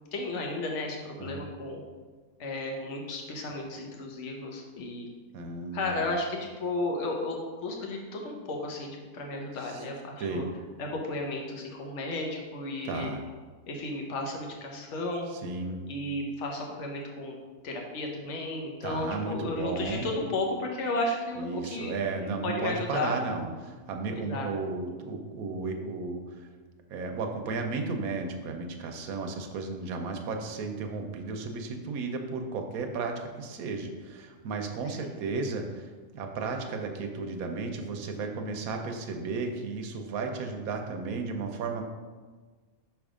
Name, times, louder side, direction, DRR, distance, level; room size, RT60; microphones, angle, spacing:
voice 1, 0.1-1.8 2.4-5.1 5.7-10.4 10.8-13.1 13.7-15.3 15.9-17.4 17.6-23.2 24.1-24.5 35.0-35.1, left 2 dB, 55° left, 1 dB, 1.2 m, -33 dB
voice 2, 5.3-6.0 9.6-9.8 10.2-10.5 12.8-13.2 15.3-15.8 18.8-20.1 21.4-26.5 26.9-41.8, right 4 dB, 75° right, 4 dB, 1.1 m, -34 dB
5.9 x 3.5 x 4.9 m, 1.4 s
omnidirectional pair, 1.6 m